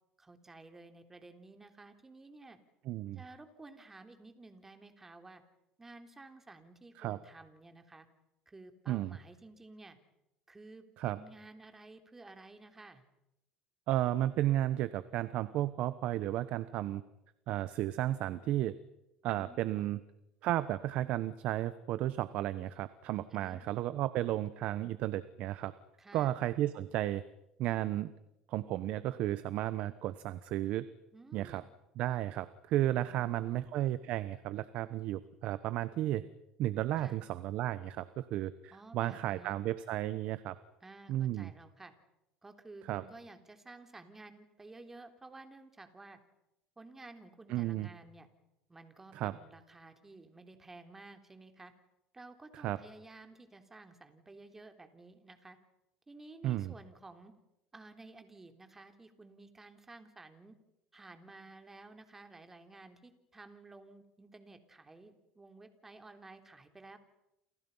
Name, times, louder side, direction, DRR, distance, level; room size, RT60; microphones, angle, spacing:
voice 1, 0.2-2.6 3.2-5.4 5.8-8.1 8.5-10.0 10.5-13.0 19.2-19.9 23.3-23.6 26.0-26.4 31.1-31.7 33.1-33.7 37.0-37.2 38.7-39.6 40.8-41.9 42.4-46.2 46.8-48.3 48.7-51.7 52.1-55.6 56.1-57.3 57.7-60.6 60.9-67.0, right 3 dB, 15° right, 6 dB, 3.5 m, -53 dB
voice 2, 2.9-3.2 7.0-7.2 8.9-9.2 11.0-11.2 13.9-17.0 17.5-18.7 19.2-20.0 20.4-25.7 26.1-27.2 27.6-28.1 28.5-30.8 31.3-31.6 32.0-36.2 36.6-40.6 41.1-41.5 42.9-43.0 47.5-47.9 49.1-49.4 52.5-52.8 56.4-56.7, right 14 dB, 60° right, 14 dB, 1.1 m, -33 dB
29.5 x 27.5 x 5.7 m, 0.87 s
supercardioid pair, 110°, 2 cm